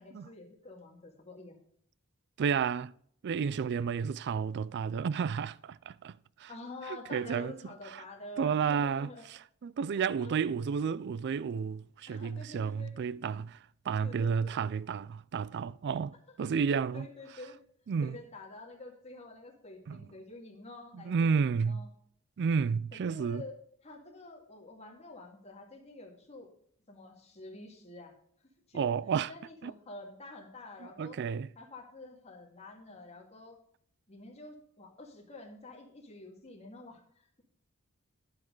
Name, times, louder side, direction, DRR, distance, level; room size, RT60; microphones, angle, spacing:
voice 1, 0.0-1.6 6.5-9.3 10.2-10.3 12.1-12.9 14.0-14.5 16.4-16.5 16.9-17.6 18.0-21.9 22.9-23.5 23.8-26.5 26.9-28.1 28.7-28.9 29.3-31.2 31.6-33.6 34.1-37.4, left 2 dB, 30° left, 2.1 m, -48 dB
voice 2, 2.4-2.9 3.2-6.5 6.9-7.5 7.9-8.0 8.4-13.6 13.9-17.1 17.9-18.2 19.9-20.0 20.9-21.8 22.4-23.4 28.7-29.3 29.6-29.7 30.8-31.5, right 6 dB, 55° right, 0.3 m, -31 dB
10.5 x 7.6 x 3.8 m
head